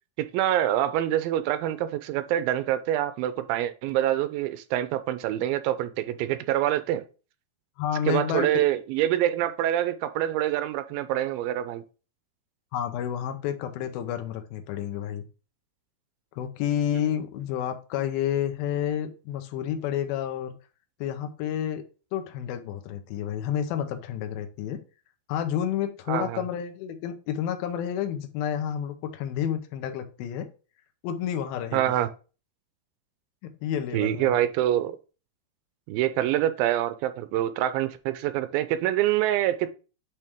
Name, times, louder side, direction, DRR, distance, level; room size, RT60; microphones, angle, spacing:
voice 1, 0.2-7.0 8.1-11.8 26.1-26.4 31.7-32.1 33.9-35.0 35.9-39.7, right 12 dB, 80° right, 2.3 m, -26 dB
voice 2, 7.8-8.5 12.7-15.2 16.4-20.5 21.0-24.8 25.3-30.5 31.0-31.9 33.4-34.4, left 9 dB, 80° left, 2.6 m, -30 dB
8.5 x 3.2 x 3.5 m
omnidirectional pair, 4.2 m